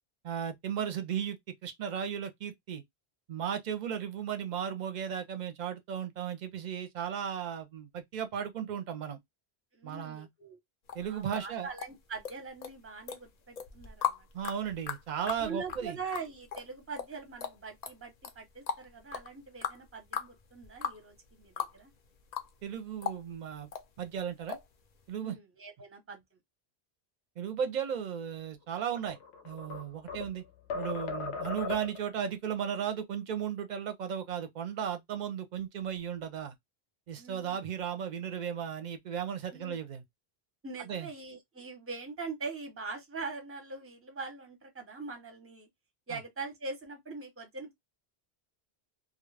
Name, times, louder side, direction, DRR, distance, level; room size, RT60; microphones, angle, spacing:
voice 1, 0.2-2.8 3.3-9.2 9.8-10.3 10.9-11.7 14.3-16.0 22.6-23.7 24.0-24.6 25.1-25.4 27.4-29.2 29.4-30.4 30.7-36.5 37.1-40.0 40.9-41.1 46.1-46.2, right 8 dB, 50° right, 0.6 m, -35 dB
voice 2, 9.7-10.6 11.1-14.3 15.4-21.9 25.2-26.2 37.1-37.6 39.5-39.8 40.6-45.7 46.1-47.7, right 4 dB, 15° right, 0.7 m, -42 dB
sound 1, 10.9-12.3 12.6-13.2 13.6-21.8 22.0-22.7 23.0-23.9 24.5-24.7 25.0-25.1, left 8 dB, 55° left, 0.5 m, -37 dB
sound 2, 29.0-30.4 30.7-32.1, left 5 dB, 85° left, 0.9 m, -37 dB
2.3 x 2.0 x 3.2 m
omnidirectional pair, 1.1 m